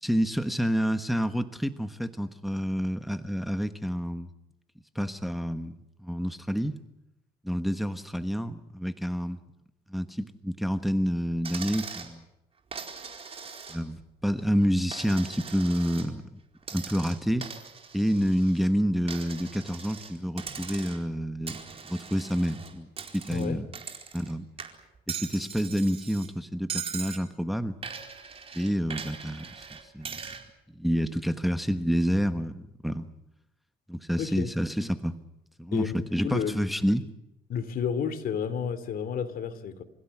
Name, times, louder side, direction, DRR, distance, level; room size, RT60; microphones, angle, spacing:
voice 1, 0.0-4.3 4.9-5.7 6.0-6.8 7.4-9.4 9.9-12.3 13.7-16.3 16.7-17.5 17.9-21.6 21.9-22.9 23.1-23.7 24.1-24.5 25.1-27.7 28.5-30.2 30.7-33.1 33.9-35.2 35.6-37.0, equal, ahead, 9 dB, 1.2 m, -28 dB
Coin (dropping), 11.4-12.1 12.7-14.0 14.4-16.1 16.6-18.7 19.1-20.1 20.4-21.1 21.5-24.3 24.6-26.3 26.7-27.2 27.8-30.4, right 6 dB, 35° right, 4.4 m, -40 dB
voice 2, 34.2-34.5 35.7-36.0 36.2-36.6 37.5-39.8, left 7 dB, 60° left, 12 dB, 2.9 m, -31 dB
28.0 x 16.5 x 9.9 m, 0.88 s
cardioid pair, 110°, 17 cm